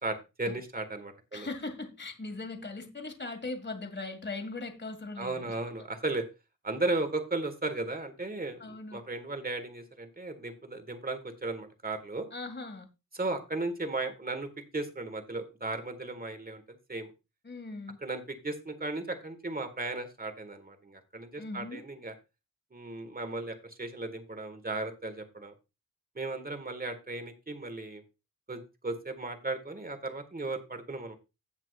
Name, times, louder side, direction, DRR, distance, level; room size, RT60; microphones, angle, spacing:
voice 1, 0.0-1.5 5.2-6.2 6.6-12.3 13.1-17.1 18.0-22.1 22.7-25.5 26.2-28.0 28.5-31.1, right 2 dB, 25° right, 7 dB, 1.8 m, -36 dB
voice 2, 1.3-5.6 8.6-9.0 12.3-12.9 17.4-18.0 21.4-21.9, left 3 dB, 35° left, 6 dB, 2.0 m, -39 dB
16.5 x 6.0 x 2.5 m, 0.27 s
wide cardioid pair, 80°, 33 cm